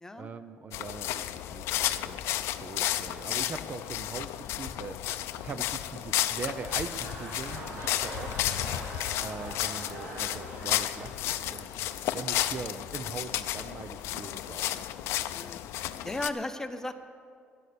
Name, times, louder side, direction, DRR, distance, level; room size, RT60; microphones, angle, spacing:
voice 1, 0.1-1.2 1.5-2.2 2.5-5.0 5.4-8.3 9.2-11.7 12.1-14.8, right 5 dB, 35° right, 11 dB, 0.5 m, -41 dB
sound 1, 0.7-16.3, left 13 dB, 80° left, 0.5 m, -32 dB
sound 2, 6.2-12.5 13.2-13.3, right 1 dB, 60° right, 3.7 m, -44 dB
voice 2, 16.0-16.9, left 2 dB, 10° left, 9 dB, 0.7 m, -36 dB
11.0 x 11.0 x 6.8 m, 2.2 s
cardioid pair, 125°, 4 cm